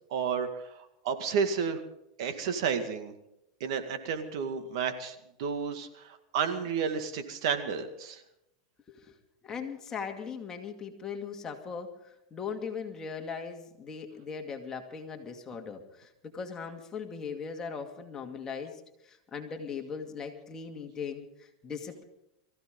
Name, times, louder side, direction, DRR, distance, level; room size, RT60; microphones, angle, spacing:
voice 1, 0.1-0.5 0.8-1.8 2.2-3.1 3.6-8.2, right 6 dB, 70° right, 8 dB, 2.2 m, -31 dB
voice 2, 9.4-22.0, left 6 dB, 20° left, 3 dB, 2.3 m, -39 dB
23.5 x 15.0 x 3.9 m, 0.82 s
supercardioid pair, 135°, 3 cm